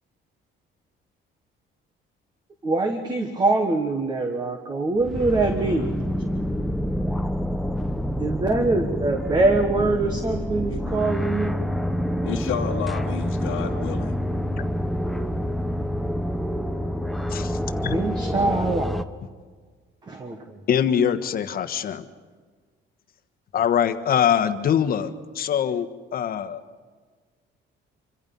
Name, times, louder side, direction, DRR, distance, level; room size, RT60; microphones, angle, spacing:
voice 1, 2.6-6.0 8.2-11.5 17.9-19.0 20.1-20.4, right 3 dB, 20° right, 5 dB, 1.4 m, -23 dB
sound 1, 5.0-19.0, equal, ahead, 0.7 m, -27 dB
voice 2, 12.2-14.2, left 8 dB, 75° left, -1 dB, 1.5 m, -31 dB
voice 3, 17.3-18.0 20.7-22.0 23.5-25.9 26.1-26.6, left 8 dB, 45° left, 10 dB, 1.3 m, -23 dB
26.5 x 24.5 x 5.5 m, 1.5 s
cardioid pair, 175°, 21 cm